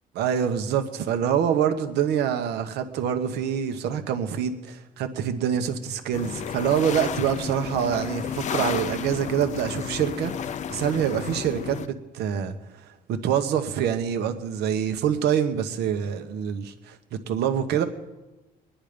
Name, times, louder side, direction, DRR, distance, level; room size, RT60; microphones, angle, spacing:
voice 1, 0.1-17.0 17.3-17.9, right 9 dB, 75° right, 8 dB, 1.2 m, -26 dB
sound 1, 6.1-11.9, left 8 dB, 45° left, 0.5 m, -32 dB
23.5 x 10.0 x 5.2 m, 1.1 s
cardioid pair, 110°, 17 cm